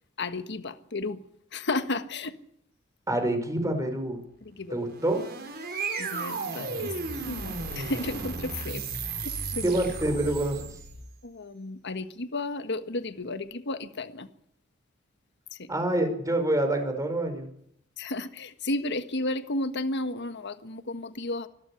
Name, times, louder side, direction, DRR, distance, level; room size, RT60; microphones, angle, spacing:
voice 1, 0.2-1.2 1.5-2.3 6.0-6.9 7.3-8.3 8.6-8.8 11.4-14.3 18.0-21.5, left 2 dB, 60° left, 10 dB, 1.4 m, -32 dB
voice 2, 3.1-4.2 4.7-5.2 9.6-10.6 15.7-17.5, right 1 dB, 15° right, 6 dB, 5.2 m, -26 dB
sound 1, 4.8-11.1, right 4 dB, 50° right, 5.0 m, -34 dB
25.0 x 13.5 x 9.9 m, 0.72 s
head